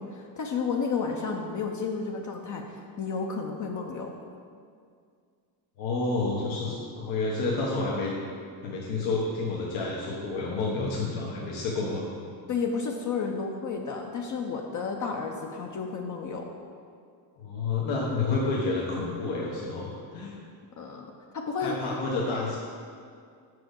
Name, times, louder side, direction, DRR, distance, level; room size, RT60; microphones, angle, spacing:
voice 1, 0.0-4.1 12.5-16.5 20.8-21.1 21.3-21.8, left 5 dB, 40° left, 1 dB, 0.7 m, -32 dB
voice 2, 5.8-8.1 8.6-12.4 17.4-20.4 21.6-22.6, left 3 dB, 80° left, -4 dB, 1.1 m, -29 dB
5.2 x 4.7 x 6.2 m, 2.2 s
cardioid pair, 95°, 46 cm